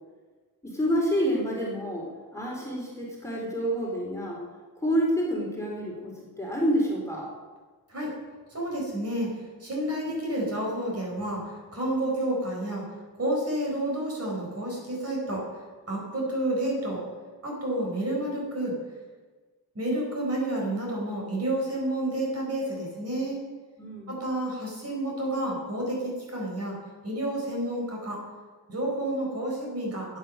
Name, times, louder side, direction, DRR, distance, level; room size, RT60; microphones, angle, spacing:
voice 1, 0.6-2.1 2.3-4.4 4.8-6.1 6.4-7.3 23.8-24.1, equal, 5° left, -4 dB, 4.0 m, -28 dB
voice 2, 8.5-12.8 13.2-15.4 15.9-17.0 17.4-18.7 19.8-23.4 24.1-26.8 27.0-28.2 28.7-30.2, right 1 dB, 40° right, -2 dB, 5.3 m, -30 dB
15.5 x 9.3 x 6.6 m, 1.3 s
wide cardioid pair, 110°, 38 cm